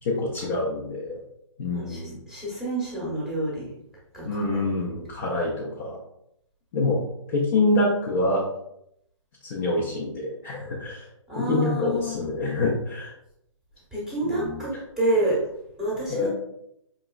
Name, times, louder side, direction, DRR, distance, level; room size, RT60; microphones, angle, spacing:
voice 1, 0.0-1.2 1.6-2.2 4.2-6.0 6.7-7.0 7.3-8.4 9.4-11.1 11.4-13.1 14.2-14.6 16.1-16.3, left 2 dB, 20° left, -4 dB, 0.4 m, -26 dB
voice 2, 1.7-3.7 4.1-4.7 11.3-12.2 13.9-15.5 15.8-16.3, right 1 dB, 5° right, -7 dB, 0.8 m, -28 dB
4.8 x 2.9 x 2.2 m, 0.78 s
hypercardioid pair, 160°, 17 cm